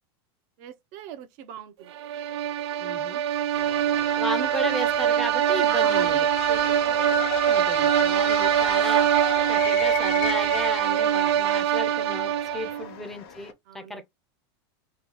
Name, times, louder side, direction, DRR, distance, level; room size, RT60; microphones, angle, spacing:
voice 1, 0.6-2.0 3.5-3.7 5.7-7.3 8.5-8.7 12.8-13.0 13.7-14.0, right 10 dB, 45° right, 0.7 m, -41 dB
sound 1, 2.0-12.9, right 10 dB, 80° right, 0.4 m, -23 dB
voice 2, 2.8-3.2 4.2-6.3 7.5-9.1 9.5-14.0, left 1 dB, ahead, 0.6 m, -34 dB
sound 2, 3.6-13.5, left 6 dB, 65° left, 0.9 m, -36 dB
3.0 x 2.3 x 3.8 m
supercardioid pair, 155°, 14 cm